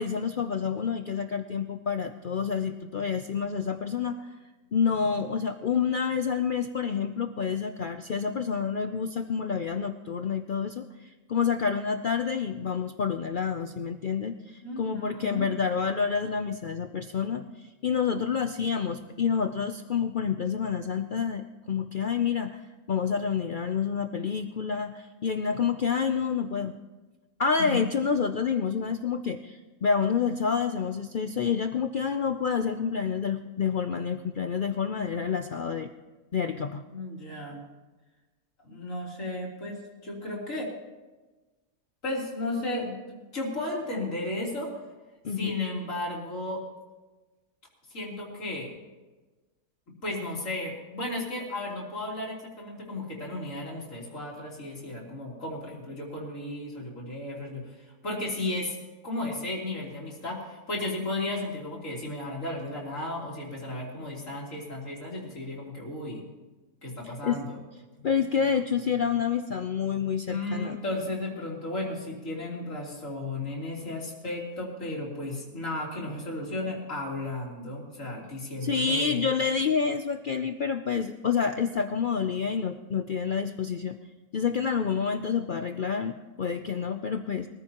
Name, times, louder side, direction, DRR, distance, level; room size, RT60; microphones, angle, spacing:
voice 1, 0.0-4.3 4.7-10.9 11.3-17.4 17.8-22.6 22.9-26.8 27.4-35.9 36.3-36.8 45.2-45.6 67.2-67.4 68.0-70.8 78.6-84.0 84.3-87.5, left 6 dB, 80° left, 7 dB, 0.4 m, -28 dB
voice 2, 14.6-15.5 27.6-27.8 36.9-37.6 38.6-40.7 42.0-44.7 45.3-46.6 47.9-48.7 50.0-57.6 58.0-58.8 59.0-66.3 66.8-67.6 70.3-79.3, left 2 dB, 55° left, -3 dB, 3.8 m, -34 dB
23.5 x 14.5 x 3.0 m, 1.2 s
omnidirectional pair, 1.6 m